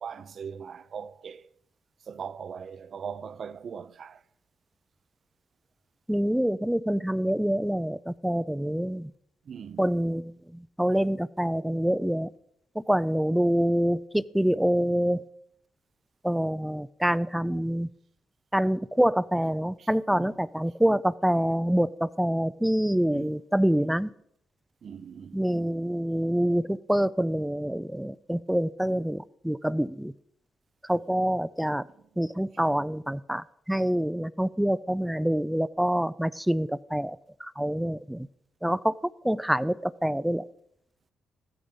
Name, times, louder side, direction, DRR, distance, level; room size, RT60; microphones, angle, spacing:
voice 1, 0.0-1.5 2.1-4.2 9.5-10.0 19.8-19.9 20.2-20.4 23.1-23.4 24.8-25.4, right 7 dB, 50° right, 0.6 m, -40 dB
voice 2, 6.1-9.1 9.8-10.3 10.8-12.3 12.9-15.2 16.2-17.9 18.5-24.1 25.3-30.1 30.9-31.8 32.2-37.2 37.6-38.3 38.6-38.9 39.2-40.4, equal, 5° right, 0.4 m, -26 dB
15.0 x 12.5 x 5.3 m
cardioid pair, 90°, 0 cm